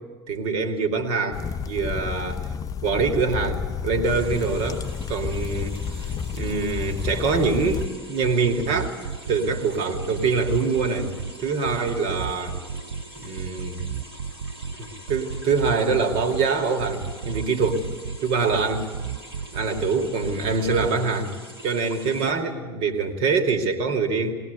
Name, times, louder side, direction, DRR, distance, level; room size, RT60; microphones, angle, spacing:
voice 1, 0.3-2.5 2.8-8.9 9.3-12.6 13.2-13.9 14.8-17.8 18.2-18.9 19.5-21.3 21.6-24.3, right 4 dB, 50° right, 5 dB, 2.5 m, -24 dB
sound 1, 1.3-7.9, left 6 dB, 30° left, 0.6 m, -31 dB
sound 2, 4.0-22.3, equal, 90° right, 3.6 m, -44 dB
sound 3, 7.2-7.9 8.2-9.6 9.9-11.3 11.6-13.0 13.4-14.8 15.1-16.5 16.8-18.2 18.5-19.9 20.2-20.9, right 6 dB, 70° right, 0.6 m, -32 dB
20.0 x 20.0 x 8.2 m, 1.4 s
figure-of-eight pair, 70°, 13 cm